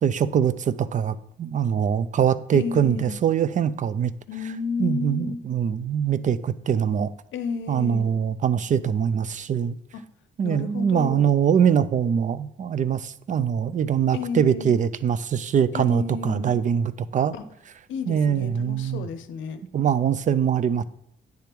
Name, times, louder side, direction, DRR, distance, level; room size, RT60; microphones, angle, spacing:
voice 1, 0.0-4.1 4.8-7.1 7.7-9.8 10.4-17.3 18.1-19.1 19.7-20.8, right 8 dB, 40° right, 16 dB, 0.4 m, -23 dB
voice 2, 2.5-3.2 4.3-5.4 7.3-8.1 10.4-11.3 14.1-14.8 15.7-16.6 17.3-17.4 17.9-19.6, left 5 dB, 75° left, 10 dB, 0.7 m, -32 dB
9.3 x 3.4 x 4.4 m, 0.75 s
cardioid pair, 90°, 20 cm